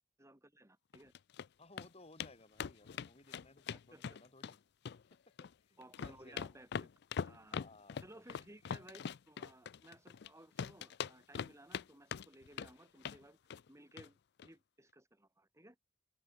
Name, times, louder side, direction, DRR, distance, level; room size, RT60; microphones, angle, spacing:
voice 1, 0.2-1.1 3.7-4.0 5.8-6.9 7.2-7.7 8.0-13.4 13.7-15.8, right 1 dB, 15° right, 6.0 m, -59 dB
sound 1, 0.9-1.5 1.8-1.9 2.2-2.3 2.6-4.5 4.8-5.5 5.8-10.3 10.6-11.8 12.1-12.7 13.0-13.2 13.5-13.7 14.0-14.1 14.4-14.5, left 7 dB, 60° left, 0.4 m, -42 dB
voice 2, 1.6-4.6 5.6-6.5 7.5-8.0 8.3-8.4, left 2 dB, 30° left, 5.1 m, -60 dB
open air
head